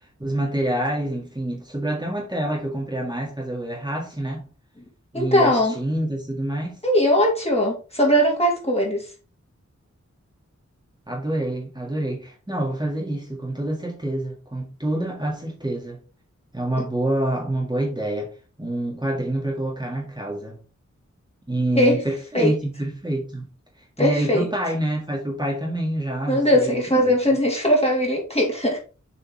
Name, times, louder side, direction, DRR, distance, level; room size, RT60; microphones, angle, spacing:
voice 1, 0.2-4.4 5.1-6.8 11.1-16.0 16.5-18.3 18.6-20.6 21.5-23.5 24.0-27.1, right 1 dB, 15° right, 2.0 m, -27 dB
voice 2, 5.1-5.8 6.8-9.1 21.7-22.0 22.3-22.5 24.0-24.5 26.3-28.8, equal, 20° left, 2.8 m, -20 dB
7.3 x 4.2 x 4.1 m
wide cardioid pair, 65°, 30 cm